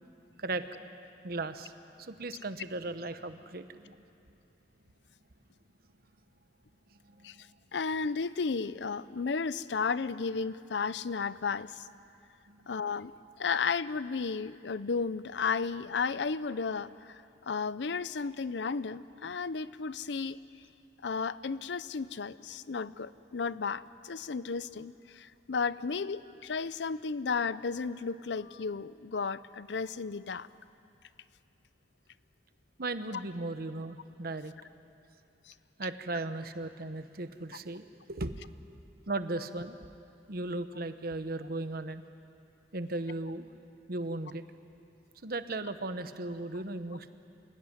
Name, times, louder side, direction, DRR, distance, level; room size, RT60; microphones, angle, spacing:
voice 1, 0.4-0.9 1.2-1.7 2.0-3.9 7.1-7.4 12.5-12.7 32.8-34.5 35.8-38.4 39.1-39.8 40.3-42.0 42.7-43.5 43.9-44.4 45.2-47.1, right 2 dB, 60° right, 10 dB, 1.1 m, -37 dB
voice 2, 7.7-11.9 12.7-13.1 13.4-20.4 21.0-30.5 35.5-35.6, left 5 dB, 80° left, 16 dB, 0.6 m, -33 dB
27.0 x 17.0 x 9.9 m, 2.6 s
head